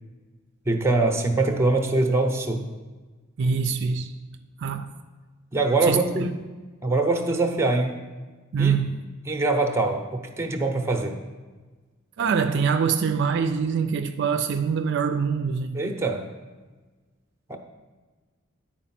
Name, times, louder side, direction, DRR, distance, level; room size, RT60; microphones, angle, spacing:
voice 1, 0.7-2.6 5.5-6.3 6.8-8.0 8.6-8.8 9.3-11.2 15.7-16.2 17.5-17.6, right 2 dB, 10° right, 0.7 m, -23 dB
voice 2, 3.4-4.1 4.6-4.9 5.8-6.3 8.5-9.0 12.2-15.8, right 6 dB, 55° right, 0.4 m, -24 dB
10.0 x 4.6 x 5.8 m
head